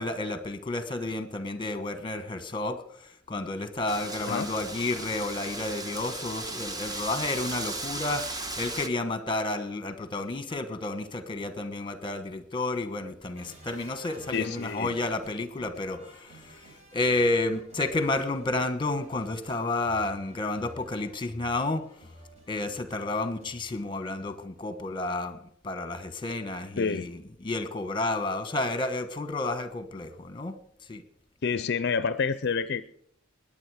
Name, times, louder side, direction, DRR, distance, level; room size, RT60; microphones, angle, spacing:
voice 1, 0.0-2.8 3.3-16.6 16.9-21.8 22.5-25.4 25.6-30.6 30.9-31.0, left 2 dB, 25° left, 10 dB, 1.2 m, -31 dB
Wind, 3.9-8.9, right 2 dB, 20° right, 1.2 m, -36 dB
sound 1, 13.4-24.5 24.8-24.9, equal, 35° right, 5.0 m, -52 dB
voice 2, 14.3-14.9 26.8-27.1 31.4-32.9, left 5 dB, 55° left, 13 dB, 0.5 m, -28 dB
20.5 x 8.7 x 4.8 m, 0.69 s
head